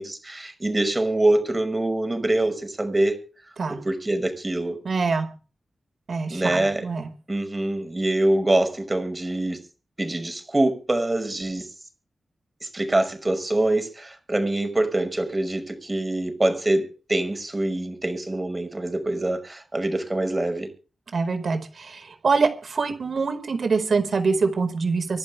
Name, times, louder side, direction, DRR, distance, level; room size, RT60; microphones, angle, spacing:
voice 1, 0.0-3.3 3.7-4.8 6.3-6.8 7.3-9.6 10.0-11.7 12.6-20.7, right 1 dB, 25° right, 5.7 m, -24 dB
voice 2, 4.8-5.3 6.1-7.1 21.1-25.2, right 4 dB, 60° right, 4.8 m, -24 dB
26.0 x 11.5 x 3.4 m
wide cardioid pair, 95°, 0 cm